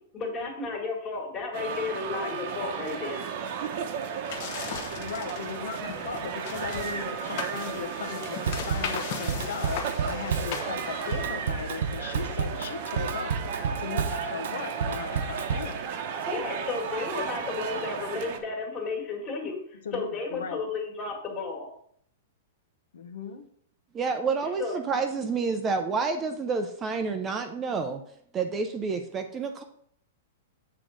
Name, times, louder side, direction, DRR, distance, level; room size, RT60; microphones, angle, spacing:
voice 1, 0.1-3.3 16.3-21.7 24.6-24.7, left 4 dB, 20° left, 1 dB, 1.8 m, -33 dB
sound 1, 1.5-18.4, right 6 dB, 40° right, 0.9 m, -34 dB
sound 2, 4.3-11.4, left 6 dB, 40° left, 1.0 m, -38 dB
voice 2, 5.0-13.4 13.8-15.9 19.7-20.7 22.9-23.5, left 5 dB, 80° left, 6 dB, 1.1 m, -37 dB
Drum kit / Drum, 8.5-15.8, right 6 dB, 70° right, 0.9 m, -31 dB
voice 3, 23.9-28.0 28.3-29.6, right 4 dB, 15° right, 7 dB, 0.5 m, -29 dB
7.8 x 3.9 x 6.1 m, 0.64 s
supercardioid pair, 165°, 0 cm